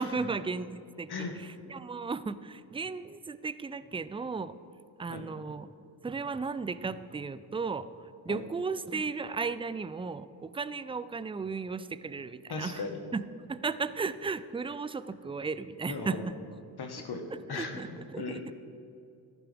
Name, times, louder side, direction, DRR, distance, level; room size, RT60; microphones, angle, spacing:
voice 1, 0.0-4.6 5.0-5.7 6.0-12.9 13.1-13.2 13.5-16.4 17.5-18.5, right 4 dB, 15° right, 14 dB, 0.4 m, -35 dB
voice 2, 12.5-13.0 15.9-16.2 16.8-17.2 17.5-18.5, left 4 dB, 60° left, 4 dB, 1.6 m, -38 dB
13.5 x 11.0 x 3.5 m, 2.6 s
supercardioid pair, 55°, 44 cm